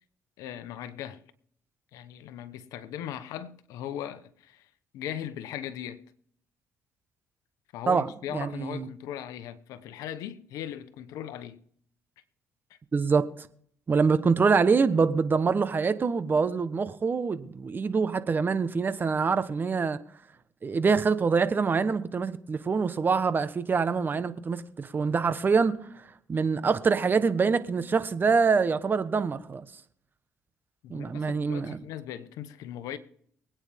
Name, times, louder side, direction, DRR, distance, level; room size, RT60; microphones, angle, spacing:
voice 1, 0.4-1.2 1.9-6.0 7.7-11.6 12.7-12.8 30.8-33.0, left 10 dB, 80° left, 1.1 m, -39 dB
voice 2, 7.9-8.9 12.9-13.5 13.9-20.0 20.6-29.6 30.9-31.8, right 5 dB, 35° right, 1.2 m, -25 dB
23.5 x 9.1 x 3.6 m
supercardioid pair, 75°, 6 cm